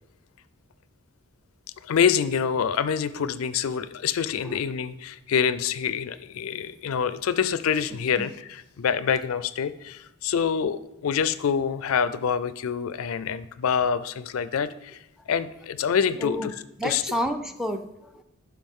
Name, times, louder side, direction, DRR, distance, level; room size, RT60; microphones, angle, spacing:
voice 1, 1.8-15.0 15.3-16.5 16.8-17.0, left 7 dB, 75° left, 15 dB, 0.4 m, -26 dB
voice 2, 16.2-16.5 16.8-18.2, equal, ahead, 8 dB, 0.4 m, -30 dB
11.5 x 4.9 x 3.6 m, 0.87 s
head